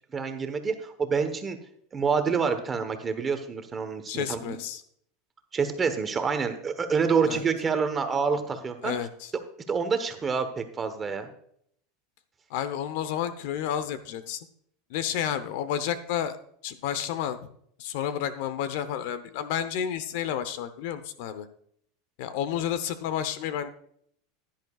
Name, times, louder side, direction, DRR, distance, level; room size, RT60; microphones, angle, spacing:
voice 1, 0.1-1.6 1.9-4.6 5.5-9.0 9.7-11.3, right 5 dB, 20° right, 8 dB, 1.1 m, -27 dB
voice 2, 4.1-4.8 7.3-7.4 8.8-9.3 12.5-14.4 14.9-16.4 16.6-17.4 17.8-21.5 22.2-23.7, left 9 dB, 60° left, 13 dB, 0.8 m, -31 dB
16.0 x 10.5 x 2.4 m, 0.67 s
supercardioid pair, 150°, 0 cm